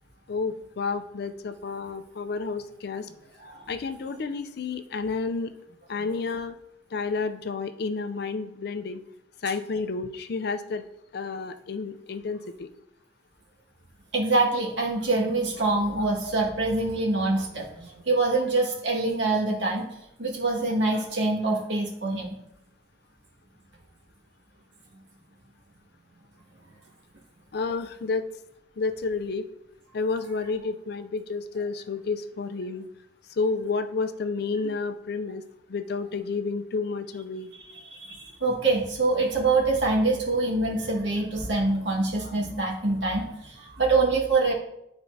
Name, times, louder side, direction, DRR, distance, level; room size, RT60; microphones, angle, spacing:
voice 1, 0.3-3.1 3.7-5.5 5.9-6.6 6.9-9.0 9.4-10.8 11.1-12.7 16.0-16.1 27.5-28.2 28.8-29.5 29.9-32.8 33.4-35.4 35.7-37.5, left 4 dB, 55° left, 9 dB, 0.4 m, -30 dB
voice 2, 14.1-19.9 20.2-22.4 37.5-44.5, right 3 dB, 70° right, -3 dB, 1.7 m, -25 dB
11.0 x 4.3 x 2.7 m, 0.82 s
head